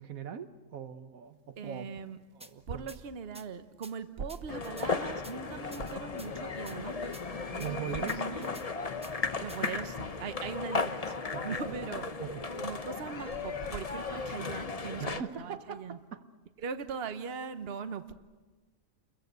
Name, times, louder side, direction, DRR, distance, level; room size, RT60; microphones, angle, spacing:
voice 1, 0.0-1.9 2.3-2.9 7.6-8.2 11.3-11.9 12.2-12.4 15.0-16.2, right 8 dB, 85° right, 10 dB, 1.6 m, -41 dB
voice 2, 1.6-2.2 2.7-7.2 7.5-8.6 9.4-11.2 11.4-12.1 12.6-16.0 16.6-18.1, right 6 dB, 50° right, 10 dB, 1.2 m, -40 dB
sound 1, 2.4-2.5 2.9-3.0 3.3-3.5 3.8-3.9 4.3-4.9 5.2-5.3 5.7-6.3 6.7-6.8 7.1-7.2 7.6-7.7 8.1-8.7 9.0-9.1 9.5-9.7, right 1 dB, 5° right, 1.0 m, -50 dB
sound 2, 4.5-15.2, left 4 dB, 30° left, 0.9 m, -36 dB
29.5 x 22.0 x 8.1 m, 1.3 s
omnidirectional pair, 1.4 m